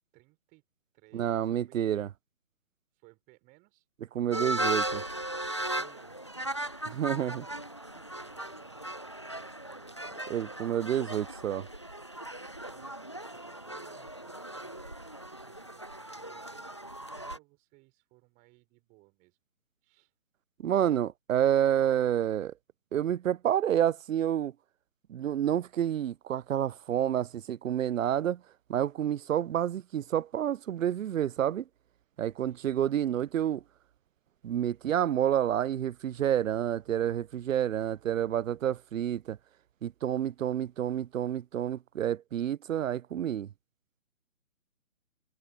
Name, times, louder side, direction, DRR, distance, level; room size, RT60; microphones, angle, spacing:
voice 1, 0.1-0.6 0.9-1.8 2.9-3.9 5.8-6.2 7.9-10.4 12.6-19.4 19.8-20.1 32.4-32.7, right 25 dB, 20° right, 5.4 m, -61 dB
voice 2, 1.1-2.1 4.1-5.0 6.9-7.5 10.3-11.7 20.6-22.5 22.9-24.5 25.1-28.4 28.7-31.6 32.2-33.6 34.4-39.4 39.8-43.5, right 10 dB, 70° right, 0.5 m, -29 dB
sound 1, 4.3-17.4, right 1 dB, 25° left, 0.4 m, -37 dB
figure-of-eight pair, 145°, 41 cm